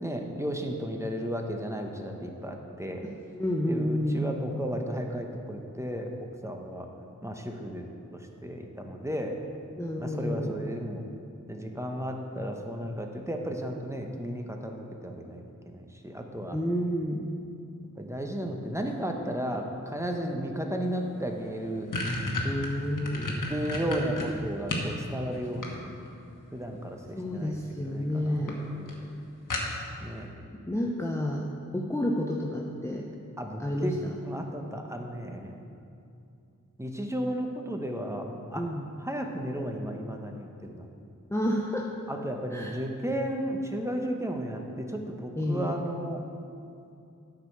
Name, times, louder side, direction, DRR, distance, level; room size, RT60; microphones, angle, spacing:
voice 1, 0.0-3.0 3.7-6.9 7.2-7.8 8.1-9.4 10.0-11.0 11.5-15.4 15.7-16.6 18.0-21.9 23.5-25.9 26.5-27.6 27.8-29.1 30.0-30.3 33.4-34.0 34.2-35.6 36.8-38.6 39.0-40.9 42.1-46.2, equal, 10° right, 2 dB, 1.1 m, -34 dB
voice 2, 3.0-4.3 9.8-10.6 16.5-17.2 22.4-23.4 27.1-28.6 30.6-31.5 31.7-33.0 33.6-34.2 38.6-38.8 41.3-41.9 42.5-42.7 45.4-45.7, equal, 10° left, -1 dB, 0.7 m, -30 dB
sound 1, 21.1-21.2 21.5-24.9 25.3-26.2 27.3-27.7 28.1-28.2 28.5-28.6 28.9-29.0 29.5-30.1, left 2 dB, 80° left, 1.3 m, -32 dB
9.2 x 5.2 x 6.7 m, 2.6 s
cardioid pair, 40°, 32 cm